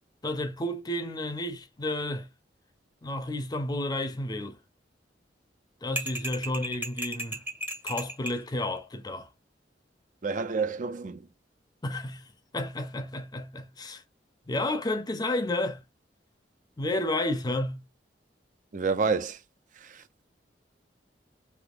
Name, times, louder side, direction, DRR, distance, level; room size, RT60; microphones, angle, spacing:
voice 1, 0.2-2.3 3.0-4.6 5.8-7.4 7.8-9.3 11.8-12.3 12.5-14.0 14.5-15.8 16.8-17.8, left 1 dB, 25° left, 0.6 m, -31 dB
sound 1, 6.0-8.4, equal, 10° right, 0.7 m, -35 dB
voice 2, 10.2-11.2 18.7-19.4, right 4 dB, 45° right, 0.5 m, -28 dB
3.5 x 2.9 x 2.4 m
head